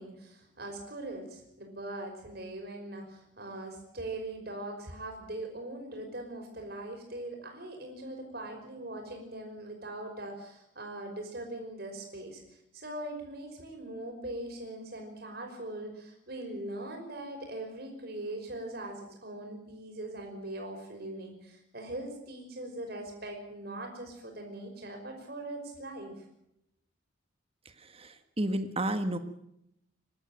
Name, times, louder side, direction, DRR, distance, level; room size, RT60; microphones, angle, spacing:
voice 1, 0.0-12.4 12.7-26.2, right 1 dB, 50° right, 2 dB, 5.6 m, -41 dB
voice 2, 27.8-29.2, right 1 dB, 30° right, 9 dB, 1.4 m, -32 dB
25.0 x 12.5 x 9.1 m, 0.80 s
head